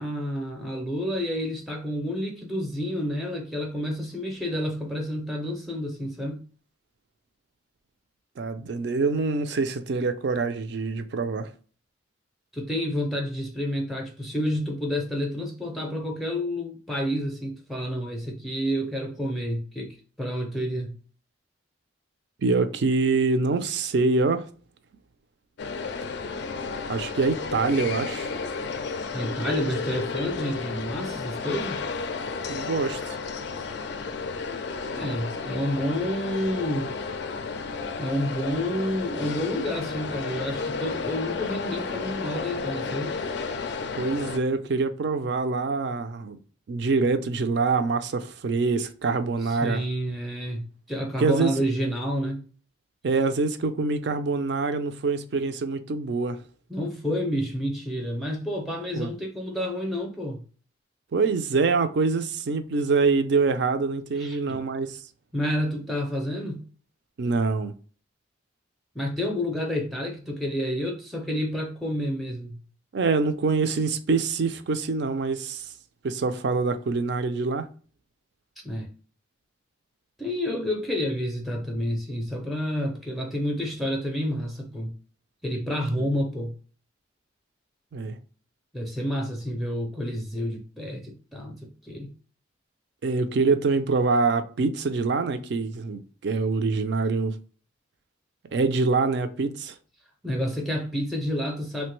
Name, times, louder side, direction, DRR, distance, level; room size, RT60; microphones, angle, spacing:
voice 1, 0.0-6.4 12.5-21.0 29.1-31.8 34.9-36.9 38.0-43.1 49.4-52.4 56.7-60.4 64.2-64.6 65.3-66.6 68.9-72.6 78.6-78.9 80.2-84.9 85.4-86.6 88.7-92.1 100.2-101.9, equal, ahead, 0.5 m, -29 dB
voice 2, 8.4-11.5 22.4-24.5 26.9-28.3 32.5-33.2 44.0-46.4 46.7-49.8 51.2-51.5 53.0-56.4 59.0-59.1 61.1-65.0 67.2-67.7 72.9-75.7 76.0-77.7 86.0-86.1 87.9-88.2 93.0-97.3 98.5-99.8, right 4 dB, 60° right, 0.4 m, -25 dB
sound 1, 25.6-44.4, left 4 dB, 60° left, 0.3 m, -32 dB
3.2 x 2.2 x 3.0 m
head